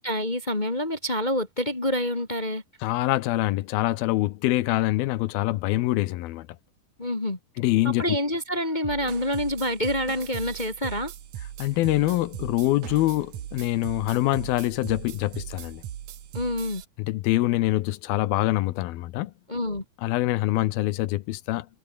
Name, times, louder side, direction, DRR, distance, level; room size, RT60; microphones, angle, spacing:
voice 1, 0.0-2.6 7.0-7.4 7.8-11.1 16.3-16.8 19.5-19.8, left 1 dB, 25° left, 1.0 m, -27 dB
voice 2, 2.8-6.5 7.6-8.2 11.6-15.8 17.0-19.3 20.0-21.7, left 17 dB, 80° left, 2.6 m, -25 dB
sound 1, 8.8-16.9, right 11 dB, 55° right, 2.5 m, -39 dB
omnidirectional pair, 4.5 m